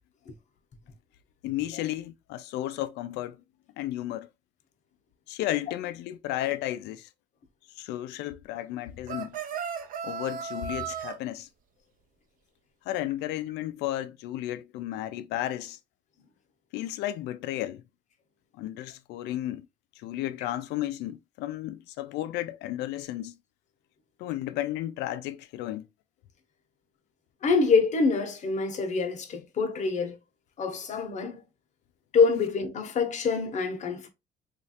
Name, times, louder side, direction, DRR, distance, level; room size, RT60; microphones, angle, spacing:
voice 1, 1.4-3.4 3.8-4.3 5.3-7.1 7.8-9.4 10.0-11.5 12.9-15.8 16.7-17.8 18.5-19.7 20.0-23.4 24.2-25.9, left 14 dB, 85° left, 0.4 m, -33 dB
sound 1, 9.1-11.2, right 7 dB, 55° right, 0.6 m, -35 dB
voice 2, 27.4-30.2 30.6-31.4 32.1-34.1, left 4 dB, 45° left, 0.8 m, -25 dB
3.1 x 2.4 x 2.7 m
cardioid pair, 110°, 17 cm